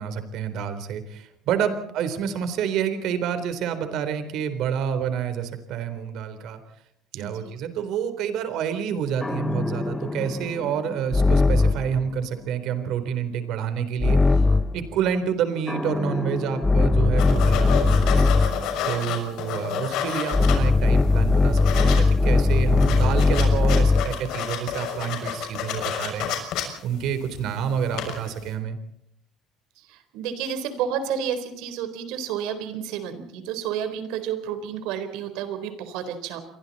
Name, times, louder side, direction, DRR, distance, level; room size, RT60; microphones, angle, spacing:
voice 1, 0.0-6.6 7.1-14.4 14.7-18.2 18.8-26.3 26.8-28.8, right 8 dB, 65° right, 10 dB, 3.8 m, -28 dB
voice 2, 7.1-7.5 29.8-36.4, right 8 dB, 85° right, 10 dB, 4.1 m, -31 dB
sound 1, 9.2-12.0 14.0-14.8 15.7-18.7 20.3-24.2, left 3 dB, 10° left, 1.0 m, -20 dB
sound 2, 17.2-20.9 21.3-22.0 22.3-22.4 22.6-27.5 27.9-28.3, left 9 dB, 70° left, 6.4 m, -29 dB
29.5 x 23.5 x 4.2 m, 0.71 s
cardioid pair, 135°, 0 cm